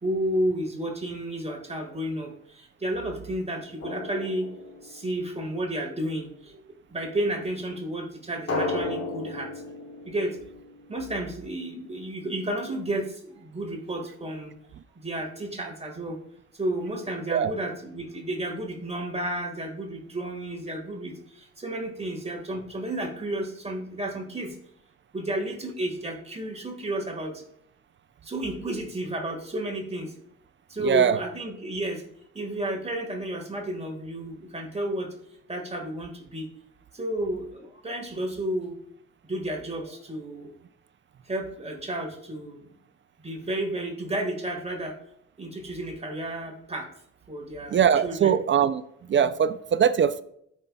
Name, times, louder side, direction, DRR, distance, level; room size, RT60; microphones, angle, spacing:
voice 1, 0.0-2.3 2.8-4.5 4.9-6.3 6.9-9.5 10.1-10.3 10.9-13.1 13.4-14.5 15.0-16.2 16.6-21.1 21.6-24.5 25.1-27.3 28.3-30.1 30.7-32.0 32.3-35.1 35.5-36.5 37.0-38.7 39.3-40.5 41.3-42.6 43.2-44.9 45.4-46.9 47.3-48.3, right 1 dB, 20° right, 1.7 m, -31 dB
Drum, 3.8-5.4 8.5-11.2, left 2 dB, 55° left, 2.5 m, -34 dB
voice 2, 30.8-31.2 47.7-48.8 49.1-50.2, right 8 dB, 40° right, 0.5 m, -21 dB
13.5 x 5.3 x 2.3 m
cardioid pair, 90°, 30 cm